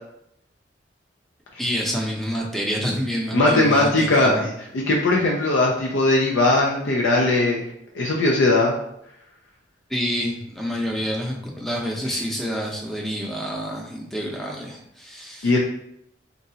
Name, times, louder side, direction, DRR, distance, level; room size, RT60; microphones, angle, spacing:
voice 1, 1.6-4.4 9.9-15.5, equal, ahead, -2 dB, 0.6 m, -28 dB
voice 2, 3.3-4.5 4.9-7.6 7.9-8.7 12.1-12.2 15.4-15.6, left 2 dB, 80° left, -2 dB, 0.5 m, -19 dB
3.9 x 2.3 x 2.7 m, 0.75 s
head